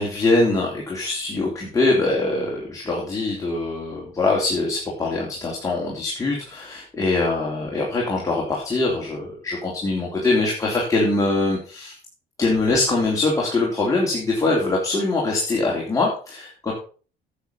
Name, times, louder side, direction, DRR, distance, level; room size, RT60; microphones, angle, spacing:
voice 1, 0.0-11.9 12.4-16.7, left 2 dB, 20° left, -3 dB, 3.4 m, -23 dB
10.0 x 7.6 x 5.3 m, 0.39 s
cardioid pair, 110°, 17 cm